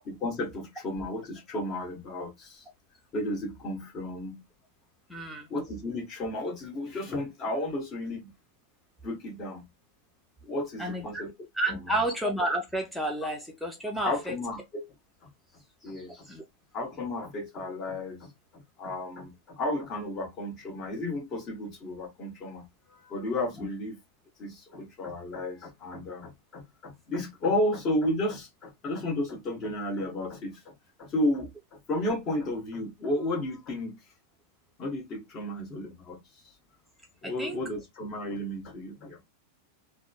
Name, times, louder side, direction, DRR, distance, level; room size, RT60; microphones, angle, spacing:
voice 1, 0.0-2.6 3.1-4.4 5.5-8.3 9.0-9.7 10.4-11.3 11.7-12.0 14.0-14.9 15.2-15.3 15.8-16.3 16.7-24.0 24.4-34.0 34.8-36.2 37.2-39.2, left 1 dB, 30° left, 1.2 m, -33 dB
voice 2, 5.1-5.5 10.8-11.2 11.6-14.3 16.0-16.4 23.6-23.7 37.2-37.6, right 1 dB, ahead, 0.6 m, -31 dB
3.6 x 2.1 x 2.3 m
figure-of-eight pair, 90°, 0 cm